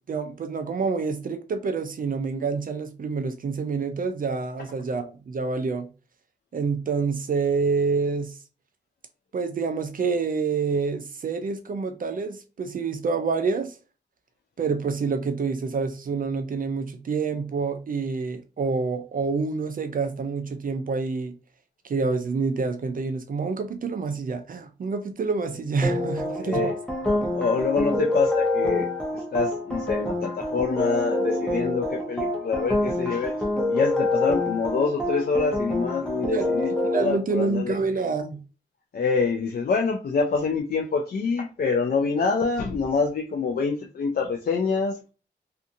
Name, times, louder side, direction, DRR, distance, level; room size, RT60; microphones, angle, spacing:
voice 1, 0.1-5.9 6.5-8.3 9.3-13.8 14.6-21.3 21.8-26.7 36.2-36.5 36.8-38.4, right 4 dB, 50° right, 0.4 m, -27 dB
sound 1, 25.8-37.1, left 1 dB, 5° left, 0.8 m, -26 dB
voice 2, 26.4-26.7 27.1-33.3 33.7-36.7 37.0-37.8 38.9-45.1, left 4 dB, 55° left, 0.5 m, -26 dB
2.7 x 2.5 x 2.5 m
cardioid pair, 75°, 19 cm